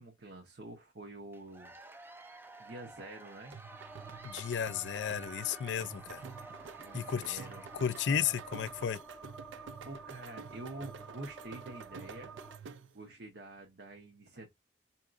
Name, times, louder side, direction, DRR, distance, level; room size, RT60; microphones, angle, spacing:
voice 1, 0.0-1.7 2.6-3.6 6.7-7.6 9.8-12.3 12.9-14.5, right 2 dB, 65° right, 0.8 m, -47 dB
Cheering / Applause / Crowd, 1.3-9.0, right 2 dB, 10° right, 0.4 m, -53 dB
sound 1, 3.5-13.0, right 6 dB, 85° right, 0.4 m, -49 dB
sound 2, 3.6-12.6, right 3 dB, 5° left, 0.8 m, -51 dB
voice 2, 4.2-6.2 6.9-7.4 7.7-9.0, left 8 dB, 80° left, 0.4 m, -33 dB
4.7 x 2.8 x 2.5 m
head